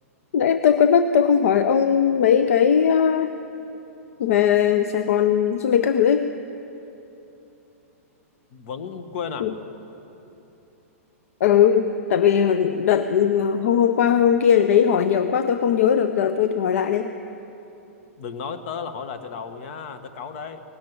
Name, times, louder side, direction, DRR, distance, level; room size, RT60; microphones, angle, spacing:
voice 1, 0.3-3.3 4.2-6.3 9.4-9.5 11.4-17.1, left 8 dB, 70° left, 10 dB, 0.6 m, -19 dB
voice 2, 8.5-9.5 18.2-20.6, left 6 dB, 50° left, 8 dB, 1.3 m, -33 dB
18.0 x 7.5 x 9.5 m, 3.0 s
hypercardioid pair, 135°, 8 cm